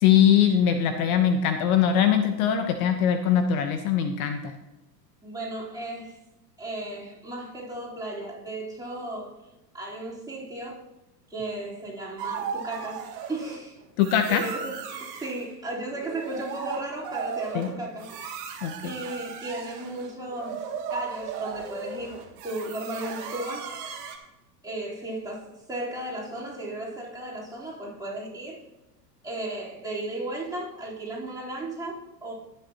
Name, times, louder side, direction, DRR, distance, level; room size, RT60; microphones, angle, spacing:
voice 1, 0.0-4.5 14.0-14.4 17.5-17.7 18.6-18.9, left 9 dB, 55° left, 7 dB, 1.1 m, -22 dB
voice 2, 5.2-6.2 6.6-9.4 9.7-10.9 11.3-13.8 14.3-18.1 18.8-20.6 20.9-23.8 24.6-28.6 29.2-32.3, right 1 dB, 5° right, -6 dB, 3.8 m, -35 dB
sound 1, 12.2-13.6 14.0-15.4 15.9-24.2, right 6 dB, 50° right, 2.0 m, -36 dB
17.5 x 6.8 x 3.0 m, 0.97 s
hypercardioid pair, 100°, 49 cm